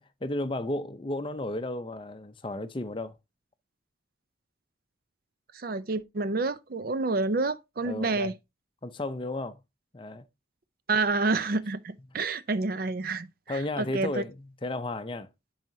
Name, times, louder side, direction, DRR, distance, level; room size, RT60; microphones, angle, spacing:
voice 1, 0.0-3.2 7.8-8.3 8.8-9.6 9.9-10.2 13.5-15.3, left 2 dB, 25° left, 0.5 m, -33 dB
voice 2, 5.5-8.3 10.9-14.2, right 3 dB, 50° right, 0.5 m, -29 dB
10.5 x 4.8 x 2.7 m
head